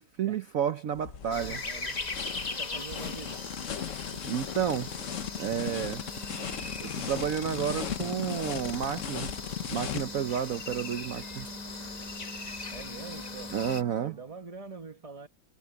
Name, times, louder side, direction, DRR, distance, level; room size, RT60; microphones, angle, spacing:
voice 1, 0.0-1.6 4.2-4.9 5.4-6.0 6.8-9.3 9.6-11.6 13.5-14.2, right 9 dB, 65° right, 0.8 m, -31 dB
sound 1, 0.9-10.0, left 8 dB, 50° left, 1.0 m, -37 dB
sound 2, 1.3-13.8, left 3 dB, 25° left, 1.0 m, -40 dB
voice 2, 1.6-2.0 2.6-3.4 12.7-13.5 14.0-15.3, right 4 dB, 25° right, 0.8 m, -44 dB
sound 3, 4.6-14.4, right 1 dB, ahead, 1.2 m, -48 dB
omnidirectional pair, 2.4 m